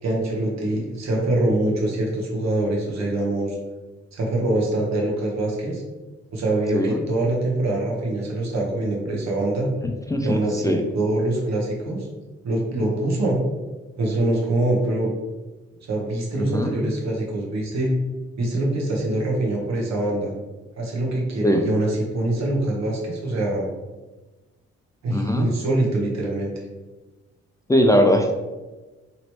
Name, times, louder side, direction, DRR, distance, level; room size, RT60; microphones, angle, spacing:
voice 1, 0.0-3.6 4.1-5.8 6.3-9.7 10.2-12.1 12.4-13.4 14.0-15.1 15.8-17.9 18.4-20.3 20.8-23.7 25.0-26.5, right 1 dB, 65° right, -2 dB, 1.0 m, -24 dB
voice 2, 9.8-10.8 16.4-16.7 21.4-21.6 25.1-25.5 27.7-28.3, equal, 10° left, 2 dB, 0.4 m, -20 dB
3.0 x 2.9 x 3.0 m, 1.2 s
supercardioid pair, 55°, 29 cm